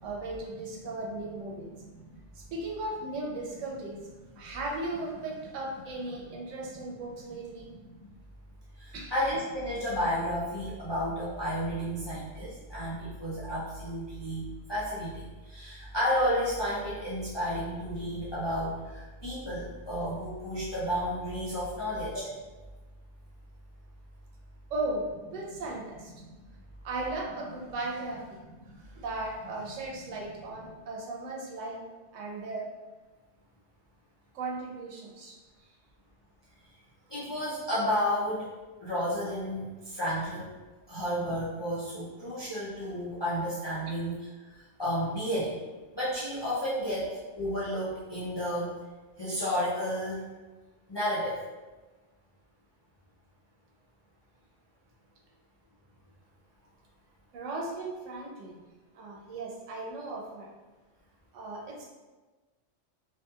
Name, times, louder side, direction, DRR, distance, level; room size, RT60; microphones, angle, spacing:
voice 1, 0.0-1.7 2.5-4.0 4.4-7.7 8.9-9.1 24.7-26.1 26.8-28.2 28.8-31.8 32.1-32.7 34.3-35.4 57.3-58.6 58.9-60.5 61.3-61.9, right 2 dB, 85° right, -2 dB, 1.0 m, -36 dB
voice 2, 1.6-2.2 6.2-6.4 7.7-7.8 8.8-22.3 26.2-26.4 28.7-28.8 30.1-30.2 37.1-38.5 38.8-40.5 40.9-44.3 44.5-45.5 45.9-47.1 47.4-48.7 49.2-50.2 50.9-51.4, equal, 35° left, -10 dB, 0.4 m, -32 dB
2.8 x 2.5 x 2.3 m, 1.2 s
omnidirectional pair, 1.3 m